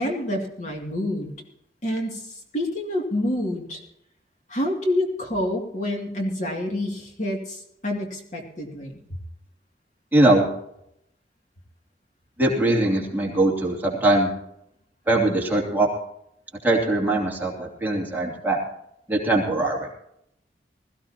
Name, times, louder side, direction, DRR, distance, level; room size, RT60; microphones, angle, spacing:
voice 1, 0.0-1.3 1.8-3.8 4.5-9.0, left 1 dB, 45° left, 1 dB, 2.5 m, -28 dB
voice 2, 10.1-10.5 12.4-14.3 15.1-15.9 16.6-18.6 19.1-19.9, right 2 dB, 10° right, -2 dB, 2.8 m, -21 dB
21.0 x 15.0 x 2.9 m, 0.77 s
head